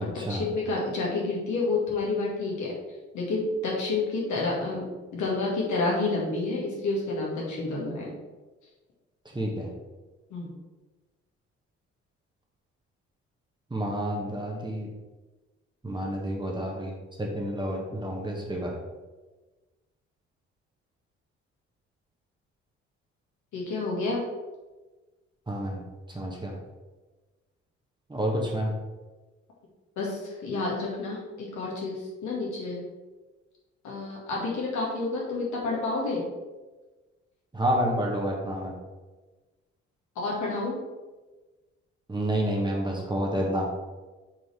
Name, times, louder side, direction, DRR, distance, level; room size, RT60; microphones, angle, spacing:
voice 1, 0.0-2.7 3.1-4.8 5.1-8.1 10.3-10.5 23.5-24.2 30.0-32.8 33.8-36.3 40.2-40.8, left 3 dB, 55° left, -3 dB, 2.0 m, -29 dB
voice 2, 9.3-9.7 13.7-14.9 15.8-18.7 25.5-25.8 26.1-26.5 28.1-28.7 37.5-38.7 42.1-43.7, equal, 10° right, -1 dB, 1.6 m, -29 dB
6.0 x 4.9 x 4.8 m, 1.2 s
figure-of-eight pair, 45°, 36 cm